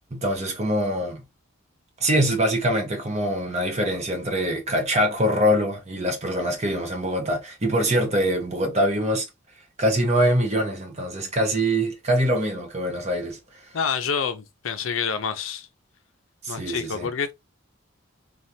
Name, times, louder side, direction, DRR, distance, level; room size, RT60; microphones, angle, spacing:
voice 1, 0.1-1.2 2.0-9.3 9.8-13.4 16.4-17.1, equal, 35° right, 0.9 m, -24 dB
voice 2, 13.7-15.7 16.5-17.3, left 6 dB, 80° left, 0.5 m, -27 dB
3.1 x 2.3 x 2.6 m
head